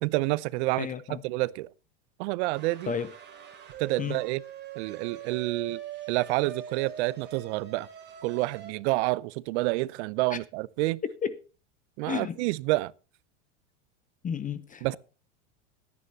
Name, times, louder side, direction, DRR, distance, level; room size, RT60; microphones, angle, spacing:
voice 1, 0.0-1.7 2.2-2.9 3.8-4.4 4.8-5.8 6.1-7.9 8.2-11.0 12.0-12.9 14.8-15.0, right 21 dB, 65° right, 0.7 m, -28 dB
voice 2, 0.8-1.2 2.9-3.1 4.0-4.2 10.3-10.4 11.2-11.4 12.1-12.4 14.2-15.0, left 7 dB, 20° left, 0.8 m, -32 dB
sound 1, 2.5-8.7, right 9 dB, 30° right, 3.6 m, -43 dB
20.5 x 9.8 x 2.8 m
supercardioid pair, 115°, 37 cm